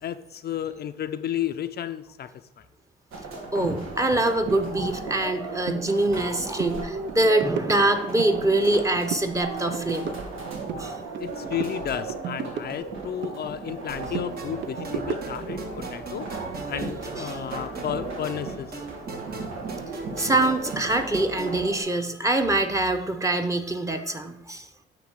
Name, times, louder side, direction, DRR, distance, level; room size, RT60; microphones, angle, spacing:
voice 1, 0.0-2.3 11.2-16.3 16.7-18.8, left 10 dB, 55° left, 9 dB, 0.5 m, -32 dB
sound 1, 3.1-21.8, right 4 dB, 90° right, 1.7 m, -36 dB
voice 2, 3.5-10.1 10.8-11.0 17.2-17.4 20.2-24.7, right 2 dB, 15° right, 6 dB, 0.9 m, -24 dB
sound 2, 5.7-5.8 6.2-6.3 6.6-6.8 7.1-8.3 8.7-9.3 9.6-11.3 11.6-13.4 13.7-15.5, right 8 dB, 65° right, 0.6 m, -35 dB
sound 3, 13.9-21.6, right 3 dB, 50° right, 1.3 m, -39 dB
9.4 x 3.3 x 6.3 m, 0.82 s
cardioid pair, 90°, 20 cm